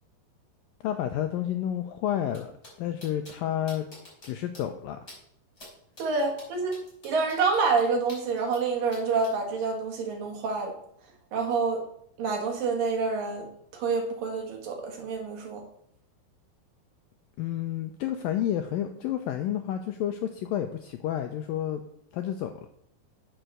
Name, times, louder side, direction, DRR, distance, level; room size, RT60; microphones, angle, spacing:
voice 1, 0.8-2.5 2.8-3.9 4.2-5.0 17.4-21.8 22.1-22.7, left 11 dB, 90° left, 7 dB, 2.0 m, -30 dB
sound 1, 2.3-2.4 2.6-2.7 3.0-3.3 3.7-4.3 4.5-4.6 5.1-5.2 5.6-5.7 6.0-8.6 8.9-9.3, left 1 dB, 15° left, 5.2 m, -47 dB
voice 2, 6.0-6.8 7.0-10.7 11.3-11.8 12.2-13.5 13.7-15.6, right 4 dB, 60° right, 2 dB, 3.1 m, -27 dB
9.3 x 7.5 x 6.6 m, 0.70 s
omnidirectional pair, 4.8 m